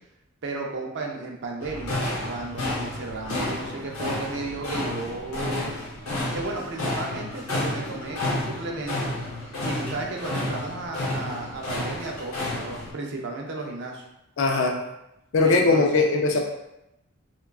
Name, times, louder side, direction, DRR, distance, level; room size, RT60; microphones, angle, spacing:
voice 1, 0.4-5.7 6.3-9.1 9.6-14.0 15.4-16.0, right 3 dB, 55° right, 0 dB, 0.5 m, -34 dB
sound 1, 1.6-12.9, left 1 dB, 85° left, 0.8 m, -31 dB
voice 2, 14.4-14.8 15.3-16.4, left 3 dB, 60° left, 2 dB, 0.4 m, -20 dB
3.4 x 2.2 x 2.3 m, 0.88 s
head